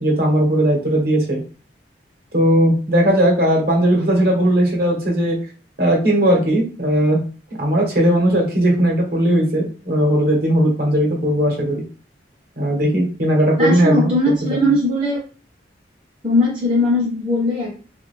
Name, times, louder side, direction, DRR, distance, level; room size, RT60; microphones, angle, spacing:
voice 1, 0.0-1.4 2.3-5.4 5.8-7.2 7.6-11.8 12.6-14.6, right 1 dB, 60° right, 0 dB, 1.1 m, -17 dB
voice 2, 13.6-15.2 16.2-17.7, left 1 dB, 30° right, -5 dB, 0.8 m, -19 dB
2.6 x 2.5 x 3.2 m, 0.36 s
head